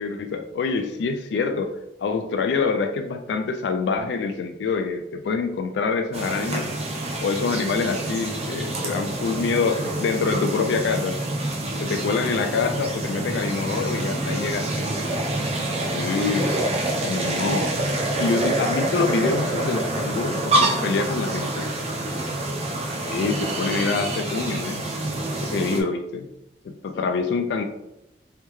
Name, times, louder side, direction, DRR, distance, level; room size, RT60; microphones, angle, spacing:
voice 1, 0.0-6.7 7.2-11.2 11.8-14.9 15.9-16.5 17.0-17.7 18.2-21.7 23.0-24.8 25.4-26.3 26.6-27.6, left 4 dB, 80° left, 6 dB, 0.3 m, -26 dB
sound 1, 6.1-25.8, right 1 dB, 35° right, 0.6 m, -27 dB
voice 2, 8.6-10.6 11.6-12.9 13.4-14.7 15.0-15.3 15.7-16.1 16.3-17.4 22.0-22.9 26.8-27.1, left 1 dB, 55° left, -8 dB, 1.4 m, -43 dB
3.5 x 3.2 x 3.1 m, 0.89 s
head